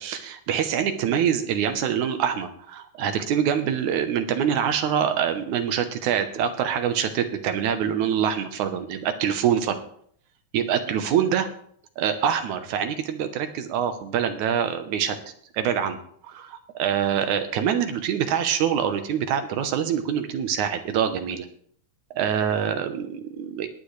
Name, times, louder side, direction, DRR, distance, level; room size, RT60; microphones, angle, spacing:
voice 1, 0.0-9.8 10.5-11.5 12.0-15.2 15.5-16.0 16.2-21.5 22.1-23.7, right 8 dB, 70° right, 8 dB, 2.2 m, -25 dB
19.5 x 9.1 x 3.2 m, 0.62 s
omnidirectional pair, 3.8 m